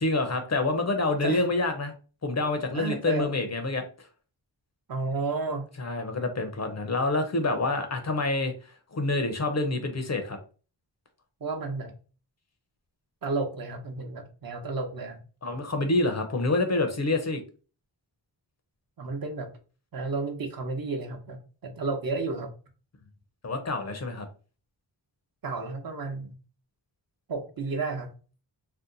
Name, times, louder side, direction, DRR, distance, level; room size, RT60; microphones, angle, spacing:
voice 1, 0.0-1.9 2.2-3.8 5.8-10.4 15.4-17.4 23.4-24.3, left 2 dB, 40° left, 6 dB, 0.5 m, -27 dB
voice 2, 2.7-3.3 4.9-5.7 11.4-11.9 13.2-15.2 19.0-19.5 19.9-22.5 25.4-26.4 27.3-28.1, right 3 dB, 50° right, 5 dB, 0.7 m, -32 dB
2.7 x 2.1 x 3.8 m, 0.37 s
wide cardioid pair, 105°, 44 cm